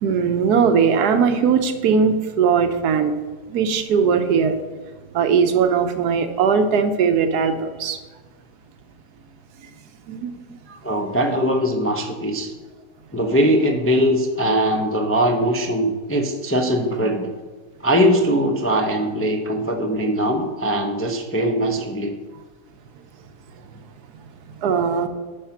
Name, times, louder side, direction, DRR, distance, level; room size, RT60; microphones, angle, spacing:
voice 1, 0.0-3.1 3.5-4.6 5.1-8.0 10.1-10.3 24.6-25.1, right 6 dB, 85° right, 8 dB, 1.4 m, -19 dB
voice 2, 10.8-12.5 13.1-17.3 17.8-22.2, equal, 20° left, 3 dB, 0.3 m, -21 dB
9.9 x 5.7 x 5.8 m, 1.3 s
omnidirectional pair, 1.6 m